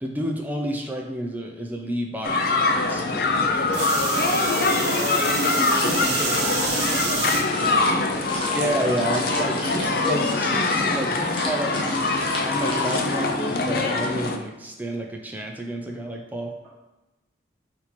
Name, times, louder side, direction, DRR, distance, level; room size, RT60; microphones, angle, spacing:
voice 1, 0.0-3.9 5.9-6.4 8.5-12.1 12.4-16.7, equal, 10° right, 1 dB, 0.4 m, -30 dB
sound 1, 2.2-14.4, left 3 dB, 50° left, 0.4 m, -23 dB
sound 2, 3.7-7.4 8.1-8.5 9.8-9.9, right 5 dB, 65° right, 0.7 m, -28 dB
voice 2, 4.5-9.9 10.8-11.7, equal, 10° left, -12 dB, 1.3 m, -44 dB
sound 3, 5.0-13.0, left 1 dB, 30° left, 0.8 m, -35 dB
4.3 x 2.7 x 4.3 m, 1.0 s
head